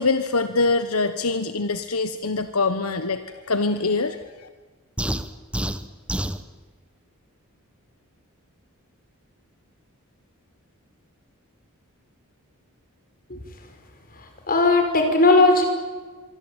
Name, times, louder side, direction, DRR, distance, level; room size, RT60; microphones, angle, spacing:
voice 1, 0.0-4.5, left 3 dB, 75° left, 10 dB, 1.3 m, -24 dB
sound 1, 5.0-6.4, right 1 dB, 5° right, 1.1 m, -27 dB
voice 2, 14.5-15.6, left 2 dB, 40° left, 5 dB, 5.6 m, -17 dB
25.5 x 24.0 x 9.1 m, 1.4 s
head